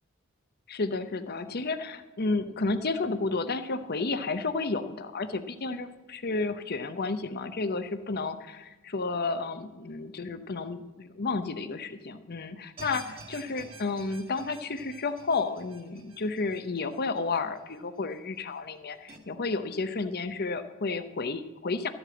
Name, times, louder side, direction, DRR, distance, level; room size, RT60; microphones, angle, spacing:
voice 1, 0.7-21.9, left 3 dB, 50° left, 10 dB, 0.8 m, -32 dB
sound 1, 12.8-18.0 18.4-18.5 19.1-19.2, right 3 dB, 25° right, 1.8 m, -49 dB
13.0 x 7.9 x 7.7 m, 1.2 s
head